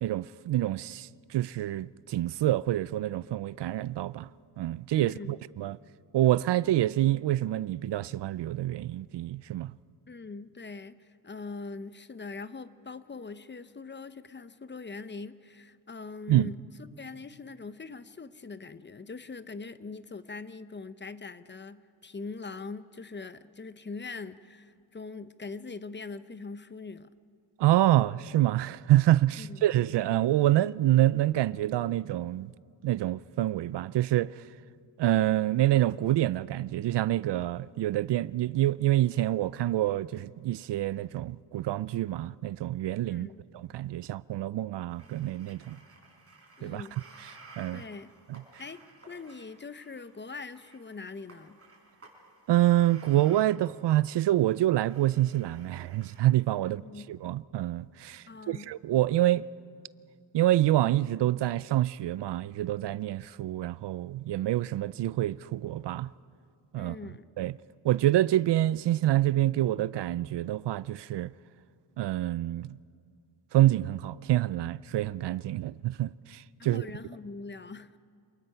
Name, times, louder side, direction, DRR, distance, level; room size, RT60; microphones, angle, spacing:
voice 1, 0.0-4.3 4.6-5.8 6.1-9.7 16.3-16.5 27.6-32.5 32.8-34.5 35.0-43.3 43.5-45.8 46.6-46.8 47.6-47.8 48.3-48.4 52.5-56.8 57.1-59.4 60.3-66.1 66.7-67.0 67.4-67.5 67.8-71.3 72.0-72.8 73.5-76.9, right 14 dB, 65° right, 0.5 m, -27 dB
voice 2, 4.9-5.4 10.1-16.6 17.0-27.1 29.4-29.6 43.1-43.4 46.6-47.0 47.7-48.1 48.6-48.8 49.1-51.6 56.6-57.1 58.3-58.7 66.7-67.3 76.6-78.0, left 4 dB, 25° left, 0.7 m, -42 dB
sound 1, 44.9-53.5 54.0-54.6 54.9-56.3, right 3 dB, 30° right, 5.0 m, -55 dB
27.5 x 20.0 x 5.6 m
cardioid pair, 90°, 45 cm